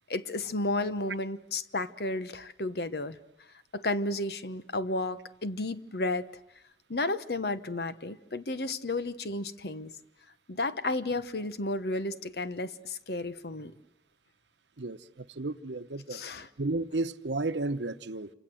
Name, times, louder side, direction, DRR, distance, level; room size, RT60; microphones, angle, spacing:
voice 1, 0.1-3.2 3.7-6.3 6.9-9.9 10.5-13.7 16.1-16.5, left 2 dB, 65° left, 1.1 m, -32 dB
voice 2, 14.8-16.2 16.6-18.3, right 2 dB, 85° right, 1.0 m, -33 dB
28.0 x 26.0 x 7.8 m
head